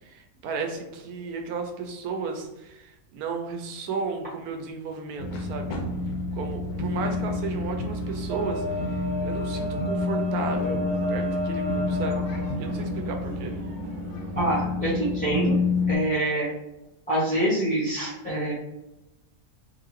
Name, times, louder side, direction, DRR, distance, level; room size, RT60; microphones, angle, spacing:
voice 1, 0.1-5.8 6.3-12.2 12.6-13.6, right 4 dB, 85° right, 4 dB, 1.1 m, -34 dB
sound 1, 5.2-16.0, left 3 dB, 85° left, 1.1 m, -29 dB
sound 2, 8.3-14.6, right 1 dB, 60° right, 0.9 m, -33 dB
voice 2, 14.3-15.5 15.9-16.5 17.1-18.5, right 1 dB, 5° left, -9 dB, 0.9 m, -25 dB
3.8 x 2.7 x 3.1 m, 0.95 s
omnidirectional pair, 1.5 m